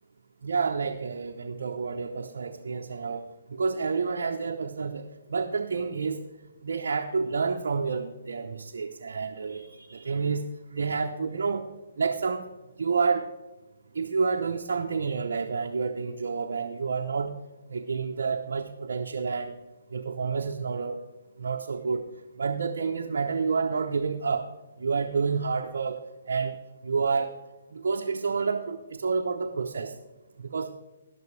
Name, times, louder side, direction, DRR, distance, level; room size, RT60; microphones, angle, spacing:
voice 1, 0.4-6.2 6.6-10.4 10.7-11.7 12.0-12.4 12.8-13.3 13.9-17.3 17.7-19.6 19.9-21.0 21.4-22.0 22.4-24.5 24.8-26.0 26.3-26.6 26.8-27.3 27.7-29.9 30.4-30.7, right 5 dB, 75° right, 2 dB, 0.8 m, -29 dB
12.0 x 12.0 x 3.3 m, 1.1 s
hypercardioid pair, 155°, 0 cm